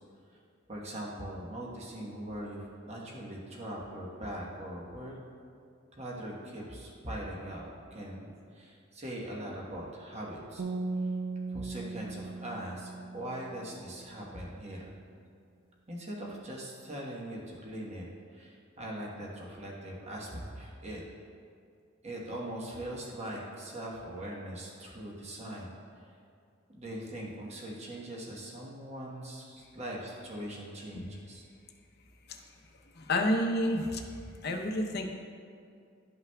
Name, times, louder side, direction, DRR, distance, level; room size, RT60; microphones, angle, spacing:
voice 1, 0.7-5.2 6.0-7.6 7.9-10.6 11.5-14.9 15.9-18.1 18.3-21.0 22.0-25.8 26.7-31.4, right 1 dB, 35° right, -3 dB, 1.1 m, -41 dB
sound 1, 10.6-13.8, right 3 dB, 85° right, 0.6 m, -37 dB
voice 2, 33.0-35.2, left 1 dB, 50° left, 3 dB, 0.7 m, -30 dB
12.0 x 5.7 x 2.3 m, 2.4 s
head